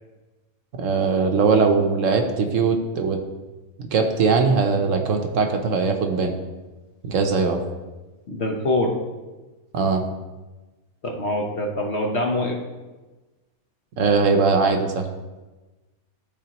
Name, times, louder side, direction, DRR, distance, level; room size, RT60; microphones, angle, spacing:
voice 1, 0.8-3.2 3.9-6.3 7.0-7.6 9.7-10.0 14.0-15.1, right 4 dB, 65° right, 4 dB, 1.0 m, -20 dB
voice 2, 8.3-8.9 11.0-12.6, left 1 dB, 50° left, 1 dB, 1.1 m, -24 dB
12.5 x 4.2 x 2.9 m, 1.2 s
omnidirectional pair, 1.6 m